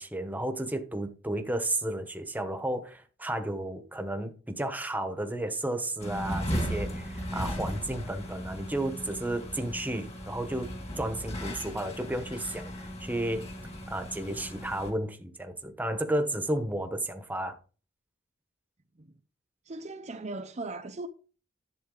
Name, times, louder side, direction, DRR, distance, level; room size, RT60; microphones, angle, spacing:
voice 1, 0.0-10.7 11.0-13.5 13.9-17.6, right 1 dB, 10° right, 1.0 m, -33 dB
sound 1, 6.0-14.9, equal, 30° left, 2.2 m, -36 dB
voice 2, 19.6-21.1, right 2 dB, 35° right, 0.6 m, -38 dB
11.0 x 7.9 x 3.9 m
head